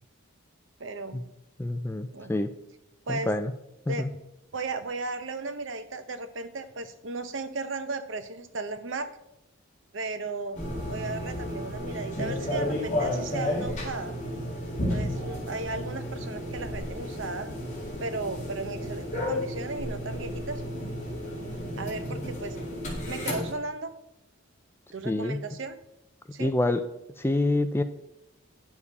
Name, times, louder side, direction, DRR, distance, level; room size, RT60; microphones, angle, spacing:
voice 1, 0.8-1.2 2.1-2.3 3.1-3.3 3.9-4.1 4.5-9.1 9.9-14.1 14.9-17.5 18.0-20.6 21.8-22.6 22.8-23.9 24.9-25.8 26.3-26.5, right 3 dB, 65° right, 10 dB, 0.8 m, -35 dB
voice 2, 1.6-2.5 3.1-3.5 3.9-4.1 25.1-25.4 26.4-26.8 27.2-27.8, left 2 dB, 10° left, 9 dB, 0.4 m, -26 dB
sound 1, 10.5-23.5, left 1 dB, 35° left, 2.3 m, -32 dB
9.9 x 7.2 x 4.1 m, 0.87 s
head